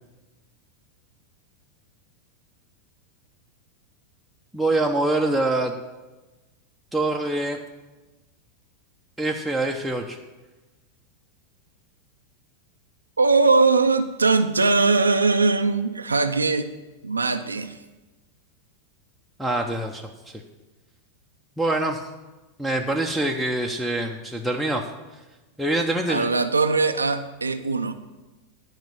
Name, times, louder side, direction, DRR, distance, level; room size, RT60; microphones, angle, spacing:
voice 1, 4.5-5.7 6.9-7.6 9.2-10.2 19.4-20.1 21.6-22.1 22.6-24.8 25.6-26.3, right 2 dB, ahead, -1 dB, 0.8 m, -24 dB
voice 2, 13.2-16.7 17.0-17.8 26.1-27.9, right 3 dB, 80° right, 8 dB, 0.6 m, -20 dB
10.5 x 5.2 x 8.5 m, 1.1 s
figure-of-eight pair, 90°, 0 cm